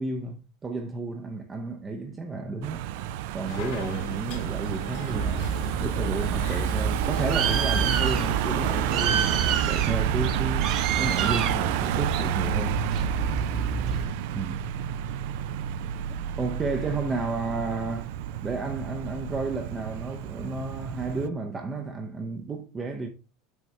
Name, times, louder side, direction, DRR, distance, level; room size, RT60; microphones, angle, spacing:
voice 1, 0.0-2.9 3.3-5.5 5.8-12.8 14.3-14.7 16.4-18.1 18.4-23.1, right 3 dB, 15° right, 0.6 m, -32 dB
Car passing by / Engine, 2.6-21.3, right 11 dB, 65° right, 0.4 m, -30 dB
sound 1, 3.5-9.6, left 5 dB, 65° left, 2.0 m, -40 dB
Bird, 5.1-14.0, right 6 dB, 45° right, 0.9 m, -28 dB
6.3 x 5.9 x 3.2 m
supercardioid pair, 155°, 0 cm